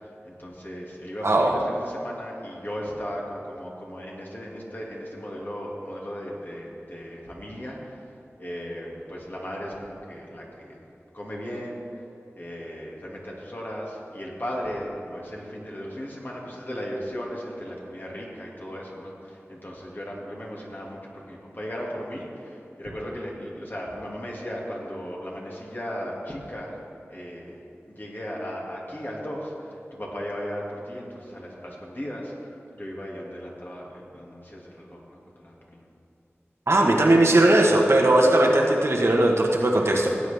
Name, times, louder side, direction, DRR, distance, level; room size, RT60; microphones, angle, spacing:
voice 1, 0.2-8.0 8.4-10.8 11.1-11.8 12.3-26.8 27.1-27.6 27.9-32.3 32.7-35.8, equal, 40° left, -3 dB, 2.3 m, -36 dB
voice 2, 36.7-40.1, right 1 dB, 65° right, -1 dB, 1.4 m, -18 dB
17.0 x 8.2 x 3.5 m, 2.7 s
wide cardioid pair, 45°, 5 cm